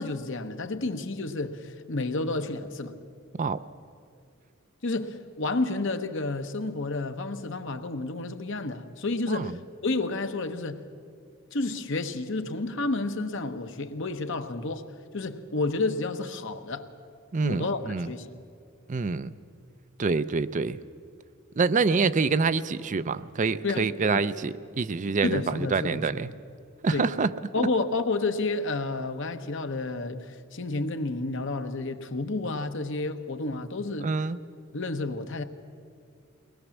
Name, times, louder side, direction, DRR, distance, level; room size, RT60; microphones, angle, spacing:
voice 1, 0.0-3.0 4.8-10.8 11.5-14.9 15.1-16.9 17.4-18.3 23.6-24.3 25.2-26.3 26.9-27.1 27.5-34.1 34.7-35.4, left 3 dB, 65° left, 1.1 m, -30 dB
voice 2, 17.3-18.1 18.9-19.3 20.0-20.8 21.6-26.3 26.8-27.3 27.6-27.7 34.0-34.4, right 4 dB, 35° right, 0.5 m, -26 dB
23.0 x 19.5 x 7.2 m
head